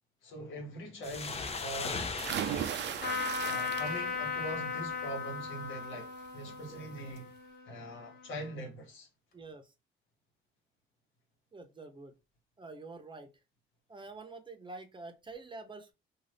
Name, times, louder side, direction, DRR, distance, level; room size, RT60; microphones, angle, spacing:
voice 1, 0.2-2.0 3.4-7.3 7.6-9.1, equal, 75° left, 1.2 m, -42 dB
sound 1, 1.0-4.4, left 4 dB, 30° left, 0.5 m, -40 dB
sound 2, 2.2-4.3 4.7-5.1 6.5-6.6 7.0-7.1, right 10 dB, 65° right, 0.4 m, -36 dB
Trumpet, 3.0-8.5, left 6 dB, 55° left, 1.1 m, -37 dB
voice 2, 9.3-9.7 11.5-12.1 12.6-13.3 13.9-15.9, right 3 dB, 25° right, 0.7 m, -47 dB
2.5 x 2.4 x 3.3 m
cardioid pair, 90°, 20 cm